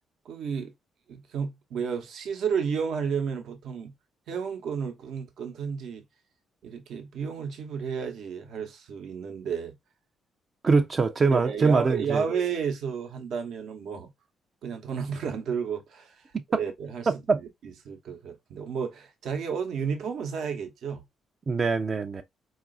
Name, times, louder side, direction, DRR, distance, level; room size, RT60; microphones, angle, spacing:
voice 1, 0.2-0.7 1.1-3.9 4.3-6.0 6.6-9.7 11.3-14.1 14.6-16.2 16.6-21.0, right 6 dB, 70° right, 0.8 m, -32 dB
voice 2, 10.6-12.2 16.3-16.4 17.1-17.4 21.5-22.2, right 4 dB, 35° right, 0.4 m, -23 dB
3.9 x 2.4 x 2.4 m
cardioid pair, 90°, 0 cm